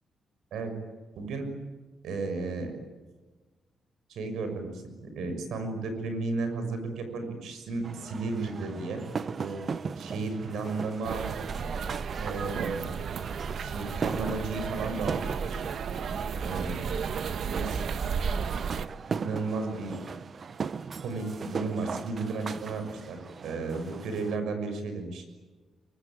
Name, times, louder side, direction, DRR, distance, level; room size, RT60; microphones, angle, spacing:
voice 1, 1.1-1.5 2.0-2.7 4.1-9.0 9.4-9.6 10.0-11.3 12.2-12.9 13.6-15.6 16.4-17.1 17.5-17.8 19.2-20.0 21.0-25.2, right 3 dB, 85° right, 7 dB, 6.4 m, -34 dB
sound 1, 7.8-24.4, right 5 dB, 45° right, 0.9 m, -38 dB
sound 2, 11.0-18.9, right 6 dB, 60° right, 1.3 m, -33 dB
25.0 x 24.0 x 9.3 m, 1.3 s
cardioid pair, 120°, 0 cm